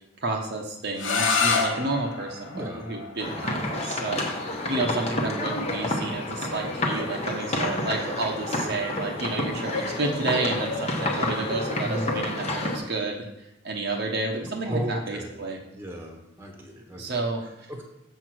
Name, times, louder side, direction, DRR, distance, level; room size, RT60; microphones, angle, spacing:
voice 1, 0.2-4.2 4.7-13.2 13.6-15.6 17.0-17.7, right 2 dB, 50° right, 1 dB, 1.0 m, -30 dB
sound 1, 1.0-6.7, left 4 dB, 60° left, 1.1 m, -30 dB
voice 2, 2.5-2.9 3.3-3.5 11.8-12.1 14.6-15.4 15.7-17.2 17.7-17.8, equal, 10° right, 1 dB, 1.2 m, -34 dB
sound 2, 3.2-12.8, left 1 dB, 30° left, 1.1 m, -29 dB
7.3 x 4.6 x 6.1 m, 0.88 s
head